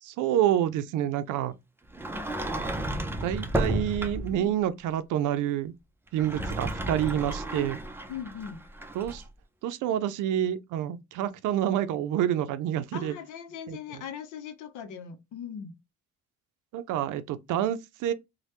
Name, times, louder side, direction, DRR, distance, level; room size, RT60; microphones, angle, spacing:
voice 1, 0.0-1.5 3.2-5.7 6.1-7.8 9.0-9.2 9.6-13.1 13.7-13.8 16.7-18.1, right 11 dB, 90° right, 0.5 m, -28 dB
Sliding door, 1.9-4.4 6.1-9.2, right 1 dB, 10° right, 0.4 m, -32 dB
voice 2, 8.1-8.6 12.9-15.7, left 8 dB, 90° left, 0.7 m, -39 dB
3.2 x 2.2 x 2.8 m
cardioid pair, 90°, 30 cm